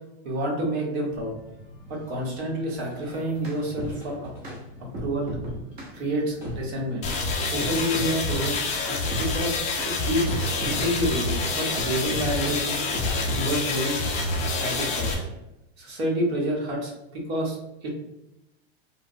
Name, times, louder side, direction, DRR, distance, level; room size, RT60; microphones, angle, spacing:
voice 1, 0.2-1.3 1.9-4.3 4.8-5.3 5.9-7.0 7.4-12.8 13.3-14.0 14.5-15.3 15.8-17.9, equal, 75° right, -2 dB, 1.1 m, -29 dB
sound 1, 1.1-15.3, left 1 dB, 5° right, 0.8 m, -44 dB
sound 2, 3.1-4.0 4.4-4.6 4.9-6.0 6.4-6.6 7.1-7.3 7.6-8.1 8.4-8.6 9.1-9.3 9.8-9.9 10.3-11.3 11.8-12.6 12.9-13.5, equal, 30° right, 0.6 m, -34 dB
sound 3, 7.0-15.1, left 3 dB, 20° left, 0.4 m, -27 dB
3.0 x 2.0 x 2.6 m, 0.92 s
supercardioid pair, 135°, 33 cm